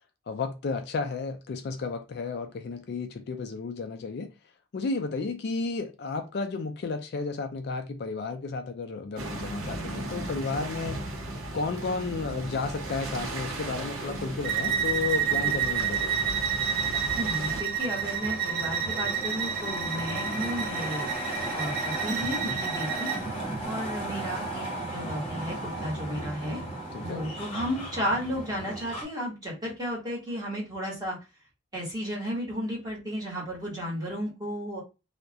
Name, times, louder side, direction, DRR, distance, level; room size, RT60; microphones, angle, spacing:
voice 1, 0.3-4.3 4.7-11.0 11.5-16.2 26.9-27.2, left 4 dB, 55° left, 0.3 m, -32 dB
sound 1, 9.2-17.6, right 1 dB, 80° right, 0.8 m, -36 dB
sound 2, 12.8-29.0, right 1 dB, 30° left, 0.7 m, -37 dB
Bowed string instrument, 14.4-23.2, right 8 dB, 50° right, 0.4 m, -30 dB
voice 2, 17.2-21.1 21.5-23.1 23.6-26.6 27.0-31.2 31.7-34.8, equal, 20° right, 1.1 m, -33 dB
2.3 x 2.1 x 2.6 m
head